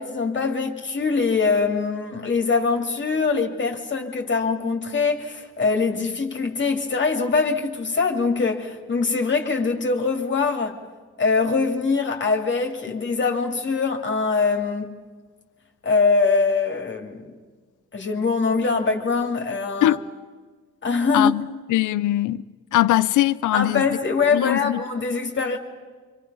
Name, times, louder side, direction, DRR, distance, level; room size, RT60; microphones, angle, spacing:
voice 1, 0.0-10.8 11.2-15.0 15.8-17.3 17.9-20.0 20.8-21.3 23.5-25.6, left 4 dB, 40° left, 2.5 m, -23 dB
voice 2, 21.7-22.4 22.7-23.8 24.3-24.8, left 15 dB, 80° left, 0.7 m, -21 dB
27.5 x 26.0 x 5.6 m
cardioid pair, 90°, 30 cm